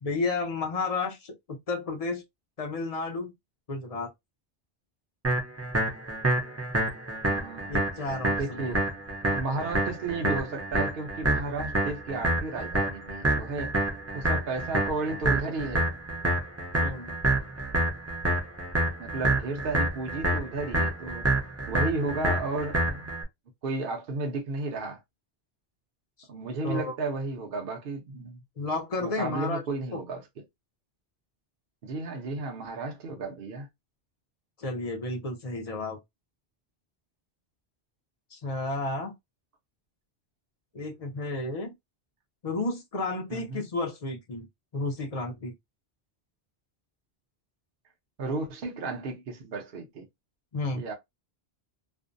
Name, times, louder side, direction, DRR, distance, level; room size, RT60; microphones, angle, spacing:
voice 1, 0.0-2.2 2.6-3.3 3.7-4.1 7.7-8.6 16.8-17.2 26.2-26.3 26.6-27.0 28.6-29.6 29.9-30.0 34.6-36.0 38.3-39.1 40.7-41.7 42.4-44.5 44.7-45.5 50.5-50.8, left 3 dB, 45° left, 0.5 m, -32 dB
sound 1, 5.2-23.2, right 1 dB, 20° right, 0.5 m, -28 dB
voice 2, 7.3-7.8 8.3-8.8 9.3-13.7 14.1-15.9 19.0-21.3 21.7-23.0 23.6-25.0 26.3-28.4 29.0-30.2 31.8-33.7 43.3-43.7 48.2-50.1 50.7-50.9, right 3 dB, 60° right, 0.8 m, -33 dB
2.5 x 2.0 x 2.5 m
omnidirectional pair, 1.1 m